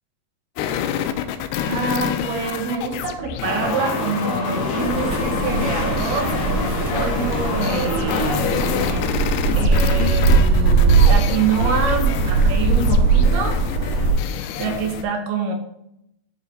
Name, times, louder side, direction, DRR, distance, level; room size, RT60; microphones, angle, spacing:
sound 1, 0.6-15.0, left 9 dB, 85° left, 2.6 m, -28 dB
voice 1, 1.6-6.4 6.9-8.5 9.6-13.6 14.6-15.5, right 5 dB, 75° right, 3 dB, 3.0 m, -26 dB
sound 2, 3.4-9.0, left 3 dB, 55° left, 2.5 m, -26 dB
sound 3, 4.8-14.1, right 4 dB, 50° right, 2.3 m, -19 dB
11.5 x 3.9 x 4.1 m, 0.76 s
omnidirectional pair, 4.6 m